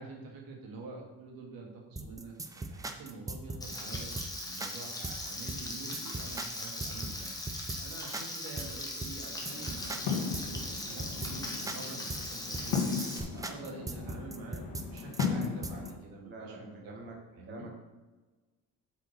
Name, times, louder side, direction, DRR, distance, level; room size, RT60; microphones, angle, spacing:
voice 1, 0.0-16.9 17.3-17.7, right 3 dB, 90° right, -1 dB, 2.1 m, -47 dB
sound 1, 2.0-15.9, right 2 dB, 10° right, 0.4 m, -40 dB
Frying (food), 3.6-13.2, left 1 dB, 10° left, 0.9 m, -40 dB
sound 2, 9.4-15.9, left 5 dB, 90° left, 1.6 m, -36 dB
voice 2, 16.2-17.2 17.5-17.7, right 2 dB, 30° right, 0 dB, 1.4 m, -46 dB
7.8 x 7.3 x 4.2 m, 1.2 s
cardioid pair, 180°, 34 cm